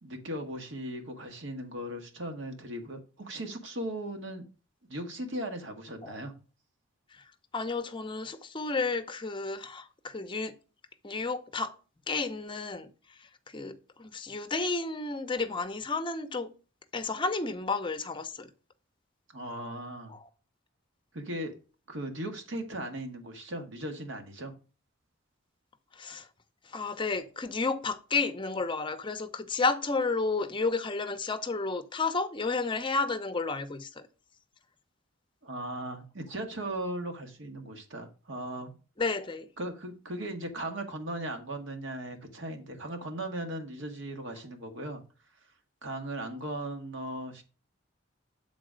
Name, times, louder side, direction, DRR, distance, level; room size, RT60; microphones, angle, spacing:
voice 1, 0.0-4.5 4.9-6.3 19.3-20.1 21.1-21.5 21.9-24.5 35.4-38.8 39.6-45.0 45.8-47.4, right 1 dB, 70° right, 1.4 m, -37 dB
voice 2, 7.5-10.5 11.0-11.7 12.1-12.9 13.5-16.5 16.9-18.5 26.0-26.2 26.7-34.0 39.0-39.5, left 3 dB, 25° left, 0.6 m, -31 dB
7.5 x 4.0 x 5.0 m
head